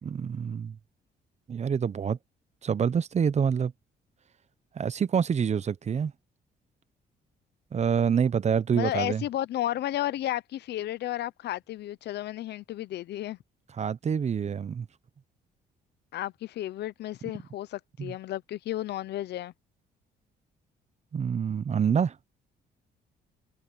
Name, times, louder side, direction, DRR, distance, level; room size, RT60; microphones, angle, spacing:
voice 1, 0.0-0.8 1.5-2.2 2.6-3.7 4.7-6.1 7.7-9.2 13.8-14.9 18.0-18.1 21.1-22.2, right 7 dB, 40° right, 0.9 m, -26 dB
voice 2, 8.7-13.4 16.1-19.5, left 13 dB, 75° left, 0.8 m, -33 dB
cardioid pair, 90°, 18 cm